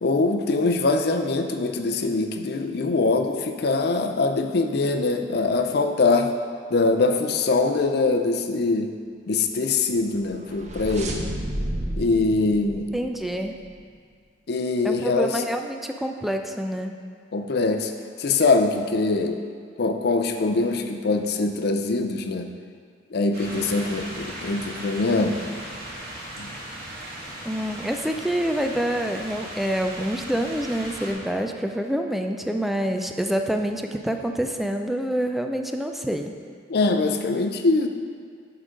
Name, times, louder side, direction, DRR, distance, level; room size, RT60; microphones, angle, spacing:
voice 1, 0.0-6.3 6.7-8.9 9.3-11.3 12.0-12.9 14.5-15.4 17.3-17.9 18.2-19.4 19.8-22.5 23.1-25.4 26.4-26.5 36.7-37.9, left 3 dB, 60° left, 6 dB, 0.5 m, -23 dB
sound 1, 10.1-13.7, right 1 dB, 40° right, 0.6 m, -32 dB
voice 2, 12.9-13.5 14.8-17.0 27.4-36.3, equal, ahead, 4 dB, 0.3 m, -27 dB
sound 2, 23.3-31.1, right 1 dB, 60° right, 1.8 m, -37 dB
8.1 x 3.8 x 5.1 m, 2.1 s
head